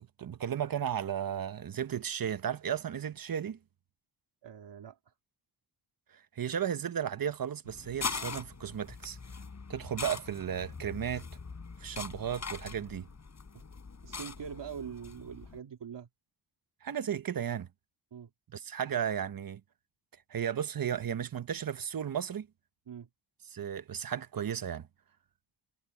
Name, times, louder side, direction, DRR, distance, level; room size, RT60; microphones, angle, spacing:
voice 1, 0.0-3.6 6.4-9.2 9.7-11.3 11.8-13.1 16.8-17.7 18.5-19.6 20.3-22.5 23.5-24.9, right 9 dB, 50° right, 1.0 m, -34 dB
voice 2, 4.4-5.0 13.5-13.6 14.0-16.1 18.1-18.3 22.9-23.1, right 8 dB, 70° right, 3.0 m, -43 dB
sound 1, 7.6-15.6, left 4 dB, 35° left, 6.4 m, -42 dB
wide cardioid pair, 115°, 44 cm